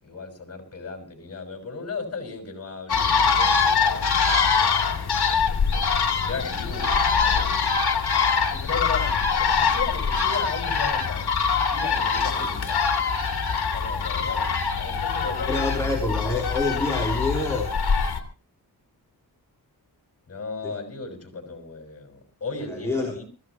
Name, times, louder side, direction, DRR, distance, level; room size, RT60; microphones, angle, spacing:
voice 1, 0.0-4.2 5.0-5.3 6.2-7.7 8.5-11.3 11.7-12.8 13.5-16.0 20.3-23.2, left 4 dB, 40° left, 3 dB, 5.7 m, -36 dB
sound 1, 2.9-18.2, left 5 dB, 75° left, 2.3 m, -23 dB
voice 2, 15.5-17.8 20.6-20.7 22.6-23.2, left 2 dB, 5° left, -1 dB, 3.5 m, -27 dB
25.0 x 15.5 x 3.0 m, 0.37 s
wide cardioid pair, 135°, 39 cm